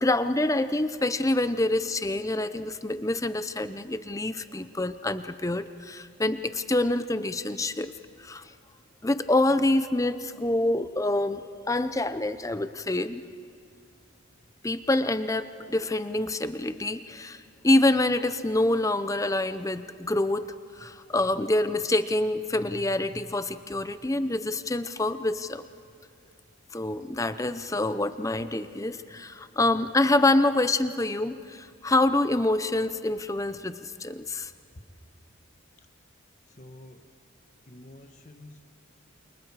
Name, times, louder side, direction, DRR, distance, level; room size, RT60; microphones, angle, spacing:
voice 1, 0.0-7.9 8.2-8.5 9.0-13.2 14.6-25.6 26.7-34.5, left 2 dB, 15° left, 12 dB, 0.6 m, -26 dB
voice 2, 36.6-37.1 37.7-38.6, left 1 dB, 35° left, 7 dB, 1.3 m, -48 dB
28.5 x 28.0 x 4.8 m, 2.2 s
head